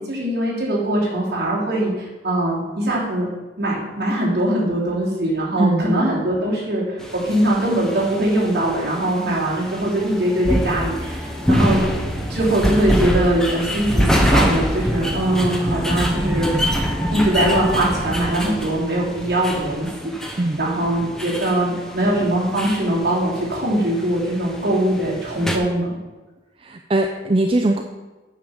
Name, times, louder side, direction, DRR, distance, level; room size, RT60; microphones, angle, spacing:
voice 1, 0.0-3.3 3.6-11.8 12.3-16.5 17.1-26.0, right 1 dB, 55° right, -5 dB, 3.2 m, -21 dB
sound 1, 7.0-25.6, equal, 5° left, 0.8 m, -25 dB
voice 2, 26.6-27.8, right 2 dB, 30° right, 4 dB, 0.5 m, -20 dB
9.1 x 5.1 x 7.1 m, 1.2 s
head